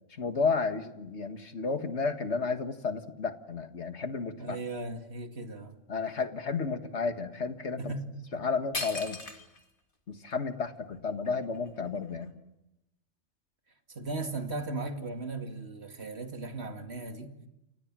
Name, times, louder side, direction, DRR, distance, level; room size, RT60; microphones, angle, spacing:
voice 1, 0.1-4.6 5.9-7.9 8.3-9.2 10.1-12.3, left 4 dB, 70° left, 2.0 m, -32 dB
voice 2, 4.4-5.7 7.8-8.1 13.9-17.3, right 2 dB, 65° right, 2.5 m, -37 dB
sound 1, 8.3-8.4 8.7-9.7 10.3-10.4 10.9-12.3, left 3 dB, 50° left, 2.6 m, -39 dB
29.5 x 26.0 x 7.5 m
omnidirectional pair, 1.2 m